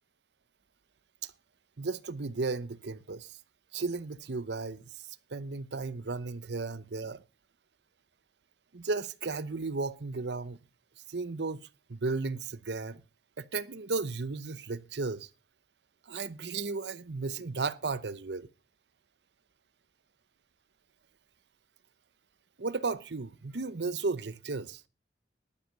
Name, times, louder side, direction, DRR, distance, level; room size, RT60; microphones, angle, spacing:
voice 1, 1.8-3.4 3.7-7.2 8.7-10.6 11.1-13.0 13.4-15.3 16.1-18.5 22.6-24.8, right 3 dB, 75° right, 0.8 m, -34 dB
11.0 x 10.0 x 5.1 m
head